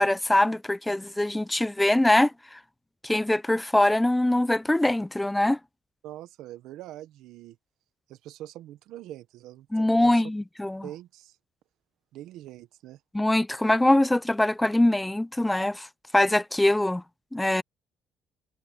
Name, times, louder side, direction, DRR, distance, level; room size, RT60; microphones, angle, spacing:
voice 1, 0.0-2.6 3.0-5.6 9.7-10.9 13.1-15.9 16.1-17.0 17.3-17.6, left 1 dB, 5° left, 0.4 m, -23 dB
voice 2, 6.0-7.6 8.1-10.2 10.8-11.4 12.1-13.0, right 13 dB, 75° right, 1.0 m, -43 dB
cardioid pair, 150°, 0 cm